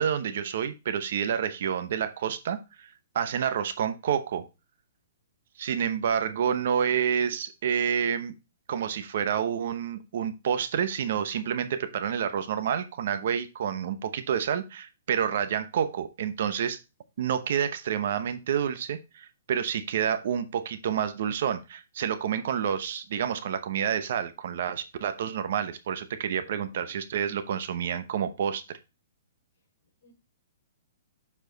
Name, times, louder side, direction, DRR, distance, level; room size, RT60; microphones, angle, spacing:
voice 1, 0.0-2.9 3.1-4.4 5.6-8.3 8.7-16.8 17.2-28.8, right 8 dB, 50° right, 0.8 m, -29 dB
voice 2, 26.4-27.1 29.8-30.1, left 2 dB, 55° left, 4.6 m, -59 dB
7.2 x 4.8 x 3.8 m
hypercardioid pair, 170°, 0 cm